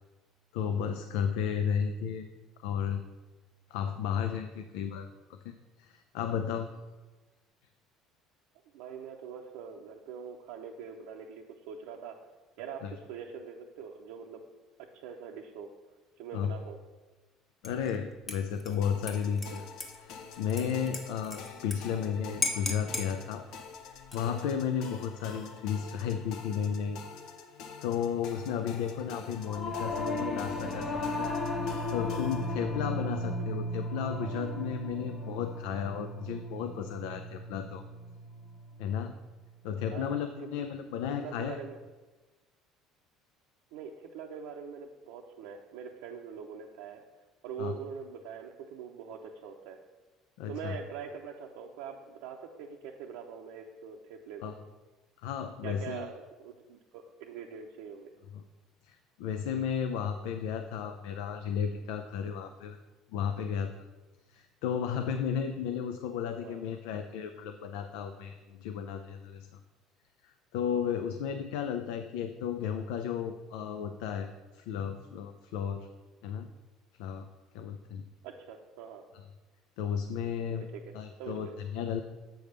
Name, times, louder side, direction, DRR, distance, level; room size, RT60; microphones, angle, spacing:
voice 1, 0.5-2.3 2.6-3.0 3.7-5.1 5.4-6.7 12.8-12.9 16.3-16.5 17.6-19.7 20.0-23.4 24.1-27.0 27.8-31.3 31.6-37.8 38.8-39.1 39.6-41.6 47.6-47.7 50.4-50.8 54.4-54.5 55.2-56.1 58.3-58.4 58.8-62.8 63.1-63.7 64.3-69.6 70.2-75.9 76.2-76.5 77.0-77.3 77.5-78.0 79.1-79.2 79.8-80.7 80.9-82.0, left 8 dB, 90° left, 7 dB, 0.4 m, -33 dB
voice 2, 8.7-12.2 12.6-14.4 14.9-15.7 16.2-16.8 39.9-40.2 41.2-41.8 43.7-47.0 47.4-49.8 50.5-54.5 55.6-58.1 66.4-66.6 78.2-79.0 80.7-80.9 81.2-81.6, right 7 dB, 85° right, 0 dB, 0.6 m, -43 dB
Dishes pots and pans / Liquid, 17.6-18.0 18.3-21.8 22.0-22.1 22.4-23.1 24.0-24.5, left 3 dB, 25° left, 1.2 m, -37 dB
sound 1, 18.8-32.5, left 5 dB, 70° left, 0.8 m, -47 dB
Singing / Musical instrument, 29.4-39.0, left 1 dB, 50° left, 1.3 m, -36 dB
7.7 x 3.5 x 6.5 m, 1.2 s
cardioid pair, 125°, 0 cm